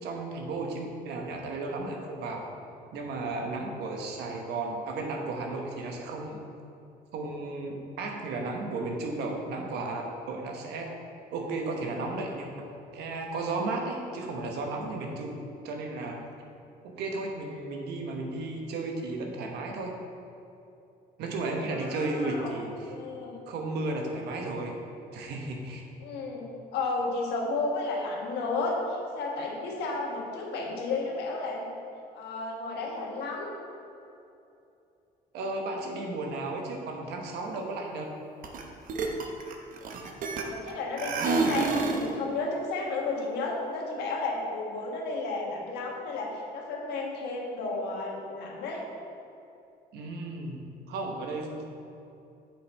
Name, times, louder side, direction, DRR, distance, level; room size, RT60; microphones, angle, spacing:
voice 1, 0.0-2.5 2.9-6.4 7.1-10.9 11.3-12.5 12.9-16.2 16.8-19.9 21.2-22.9 23.5-24.7 25.1-25.9 35.3-38.0 49.9-51.6, right 2 dB, 80° right, 1 dB, 1.1 m, -34 dB
voice 2, 21.7-22.5 22.9-23.4 26.0-31.7 32.1-33.5 40.4-48.8, left 3 dB, 80° left, -1 dB, 1.4 m, -33 dB
sound 1, 38.4-38.6 38.9-40.7 41.0-42.1, right 4 dB, 55° right, 0.9 m, -28 dB
7.5 x 5.3 x 4.2 m, 2.8 s
cardioid pair, 110°, 17 cm